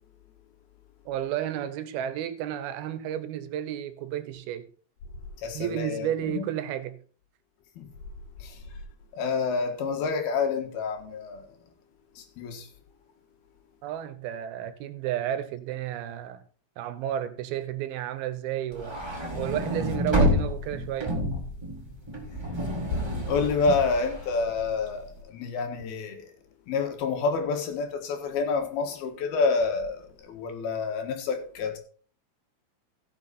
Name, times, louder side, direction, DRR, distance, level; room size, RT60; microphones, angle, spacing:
voice 1, 1.1-4.7 5.5-7.0 13.8-16.4 16.8-19.0 19.4-21.2, right 11 dB, 85° right, 2.8 m, -32 dB
voice 2, 5.4-6.5 7.8-7.9 8.4-8.6 9.1-11.5 12.2-12.7 22.9-26.3 26.7-31.8, left 4 dB, 80° left, 3.5 m, -28 dB
sound 1, 18.7-25.0, equal, 10° right, 1.9 m, -29 dB
16.0 x 6.5 x 4.2 m
omnidirectional pair, 4.3 m